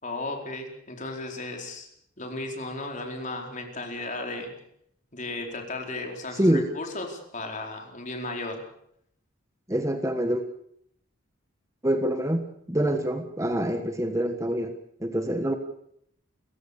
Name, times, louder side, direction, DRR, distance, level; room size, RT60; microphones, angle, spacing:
voice 1, 0.0-1.9 2.2-4.5 5.1-8.6, left 2 dB, 35° left, 3 dB, 4.4 m, -35 dB
voice 2, 9.7-10.4 11.8-12.4 12.7-14.7 15.0-15.5, right 1 dB, 15° right, 7 dB, 1.3 m, -25 dB
30.0 x 15.5 x 6.8 m, 0.71 s
head